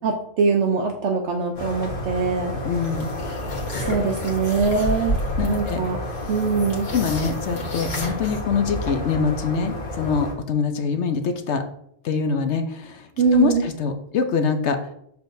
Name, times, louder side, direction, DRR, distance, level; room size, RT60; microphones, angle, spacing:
voice 1, 0.0-2.5 3.8-5.1 5.5-6.0 6.3-6.9 13.2-13.6, right 5 dB, 70° right, 3 dB, 1.0 m, -22 dB
sound 1, 1.5-10.3, left 1 dB, 45° left, 1.5 m, -31 dB
voice 2, 2.6-3.1 5.4-5.8 6.6-11.6 12.0-14.8, left 5 dB, 70° left, 7 dB, 0.9 m, -24 dB
sound 2, 2.8-8.4, equal, 85° left, 1.9 m, -31 dB
6.9 x 6.0 x 2.6 m, 0.71 s
omnidirectional pair, 1.3 m